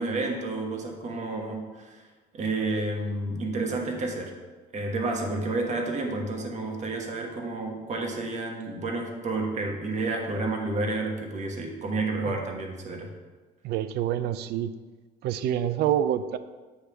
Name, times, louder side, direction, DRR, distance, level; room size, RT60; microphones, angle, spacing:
voice 1, 0.0-2.0 2.3-4.4 4.7-13.1, right 2 dB, 45° right, 2 dB, 1.3 m, -30 dB
voice 2, 13.6-14.7 15.2-16.4, right 10 dB, 75° right, 13 dB, 0.5 m, -27 dB
8.0 x 3.4 x 6.1 m, 1.3 s
cardioid pair, 110°, 17 cm